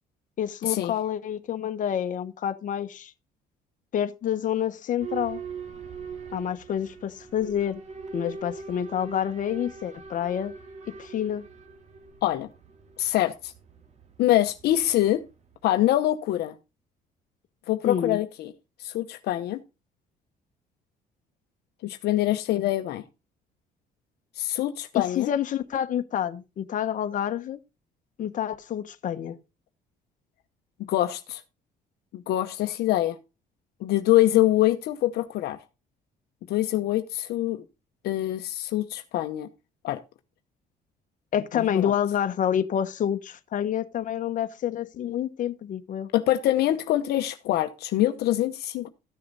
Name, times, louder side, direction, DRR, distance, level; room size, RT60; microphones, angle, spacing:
voice 1, 0.4-3.1 3.9-5.4 6.3-7.8 8.1-10.5 11.0-11.4 17.8-18.2 24.9-27.6 28.2-29.4 41.3-46.1, left 9 dB, 50° left, 1.1 m, -28 dB
Boat Water vehicle / Alarm, 5.0-15.6, right 5 dB, 40° right, 2.2 m, -42 dB
voice 2, 13.0-13.5 14.2-15.2 15.6-16.5 17.7-18.5 18.8-19.6 21.8-23.0 24.4-25.3 30.9-31.4 32.1-33.2 33.8-35.6 36.5-37.6 38.0-39.5 39.8-40.0 41.5-41.9 46.1-48.9, left 14 dB, 75° left, 0.9 m, -24 dB
13.5 x 6.7 x 4.0 m
cardioid pair, 110°, 17 cm